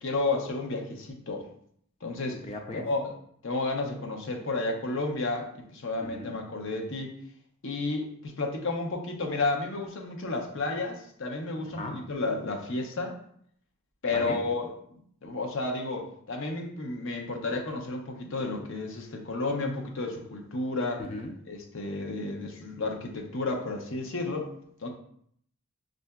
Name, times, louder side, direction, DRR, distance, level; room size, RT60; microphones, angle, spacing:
voice 1, 0.0-1.5 2.0-2.4 2.8-3.1 3.4-7.1 7.6-13.2 14.0-14.7 15.2-21.0 21.5-24.5 24.8-24.9, left 3 dB, 60° left, 2 dB, 0.7 m, -32 dB
voice 2, 2.3-2.8 6.0-6.3 11.8-12.0 14.1-14.4 21.0-21.3, left 2 dB, 25° left, 3 dB, 0.4 m, -37 dB
6.4 x 2.5 x 2.3 m, 0.65 s
head